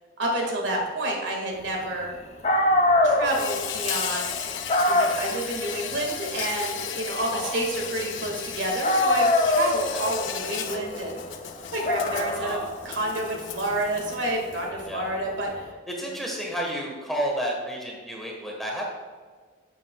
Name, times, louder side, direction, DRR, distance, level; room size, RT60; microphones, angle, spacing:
voice 1, 0.2-2.1 3.0-4.5 4.9-11.2 11.7-12.6 12.8-15.7, right 1 dB, 70° right, 0 dB, 1.9 m, -29 dB
Dog, 2.1-2.2 2.4-8.5 8.8-15.6, left 1 dB, 35° left, 0.7 m, -26 dB
Insect, 3.2-14.7, left 9 dB, 75° left, 0.6 m, -35 dB
voice 2, 12.4-12.7 14.9-15.1 15.9-18.9, right 1 dB, ahead, -2 dB, 1.3 m, -31 dB
10.5 x 7.5 x 2.3 m, 1.5 s
head